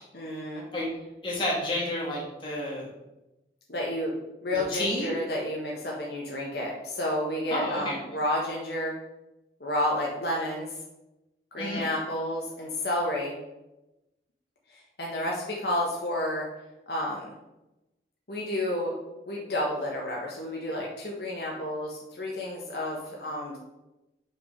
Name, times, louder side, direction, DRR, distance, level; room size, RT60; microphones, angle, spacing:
voice 1, 0.1-0.6 3.7-4.2 4.4-9.0 9.6-10.7 11.5-13.4 14.7-16.5 16.9-17.3 18.3-18.9 19.3-23.6, left 1 dB, 70° left, -2 dB, 1.3 m, -31 dB
voice 2, 1.2-2.9 4.5-5.1 7.5-8.0 11.6-11.8, left 1 dB, 30° left, -4 dB, 1.7 m, -30 dB
5.8 x 5.2 x 6.3 m, 0.97 s
head